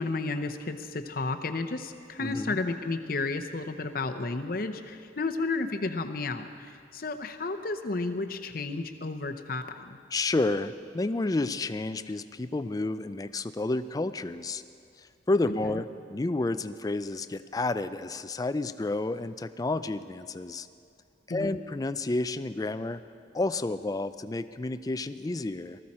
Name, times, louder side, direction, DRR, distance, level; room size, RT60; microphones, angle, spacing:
voice 1, 0.0-10.0 15.6-15.8 21.3-21.6, left 3 dB, 50° left, 7 dB, 0.8 m, -32 dB
voice 2, 2.2-2.6 10.1-14.6 15.0-20.7 21.3-23.0 23.3-25.8, left 2 dB, 20° left, 12 dB, 0.3 m, -30 dB
19.0 x 14.0 x 4.3 m, 2.4 s
head